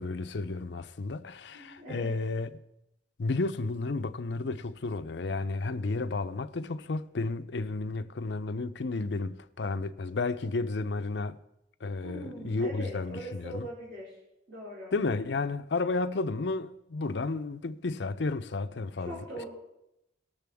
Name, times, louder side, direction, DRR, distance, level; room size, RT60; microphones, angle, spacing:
voice 1, 0.0-2.5 3.2-11.4 11.8-13.7 14.9-19.2, left 3 dB, 65° left, 0.6 m, -32 dB
voice 2, 1.5-2.2 12.0-14.2 14.5-14.9 19.0-19.5, right 1 dB, 85° right, 3.9 m, -41 dB
19.5 x 6.8 x 3.5 m
head